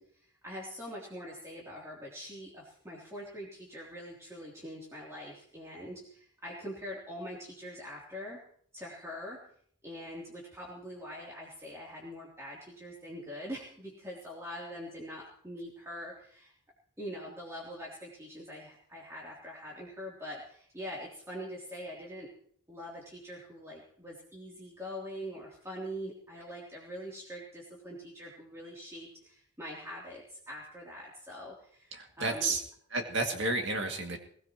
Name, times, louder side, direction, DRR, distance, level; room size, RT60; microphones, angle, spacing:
voice 1, 0.0-8.4 8.7-9.4 9.8-16.5 17.0-22.3 22.7-32.6, equal, 15° right, -6 dB, 3.2 m, -43 dB
voice 2, 31.9-32.6 32.9-34.2, right 2 dB, 55° right, 2 dB, 2.4 m, -31 dB
21.5 x 17.5 x 3.1 m, 0.63 s
head